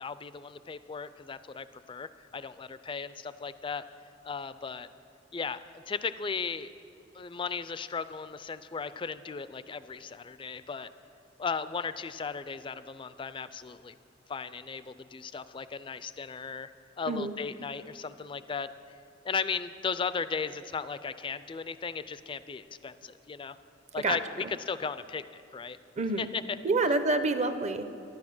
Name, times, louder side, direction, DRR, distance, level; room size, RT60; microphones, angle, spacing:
voice 1, 0.0-3.8 4.2-4.9 5.3-6.7 7.1-10.9 11.4-13.9 14.3-16.7 17.0-18.7 19.2-23.6 23.9-25.8 26.2-26.4, left 5 dB, 25° left, 14 dB, 0.4 m, -36 dB
voice 2, 26.0-26.3 26.6-28.0, right 3 dB, 40° right, 10 dB, 0.6 m, -27 dB
12.0 x 10.5 x 6.0 m, 2.6 s
head